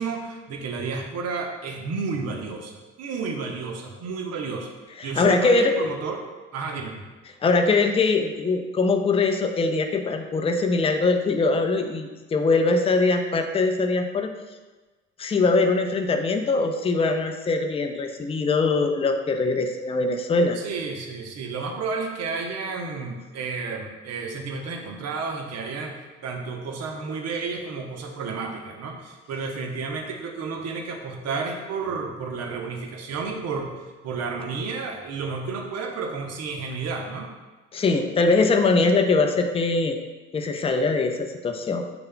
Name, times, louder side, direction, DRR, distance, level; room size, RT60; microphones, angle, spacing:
voice 1, 0.0-4.7 5.0-6.3 6.5-7.0 20.5-33.7 34.0-37.3, right 4 dB, 45° right, 2 dB, 1.1 m, -31 dB
voice 2, 5.0-5.7 7.4-14.3 15.2-20.6 37.7-40.0 40.3-41.8, left 3 dB, 15° left, 5 dB, 0.6 m, -22 dB
7.1 x 6.6 x 2.2 m, 1.2 s
figure-of-eight pair, 55°, 36 cm